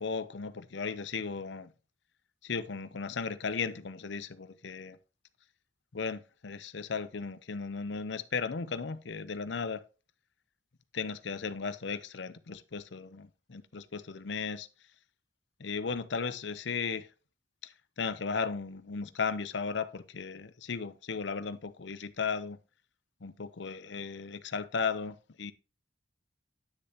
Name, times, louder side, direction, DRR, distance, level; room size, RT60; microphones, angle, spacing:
voice 1, 0.0-1.7 2.4-5.0 5.9-9.8 10.9-14.7 15.6-17.1 17.6-22.6 23.2-25.5, left 5 dB, 70° left, 0.6 m, -36 dB
9.9 x 6.6 x 2.8 m
head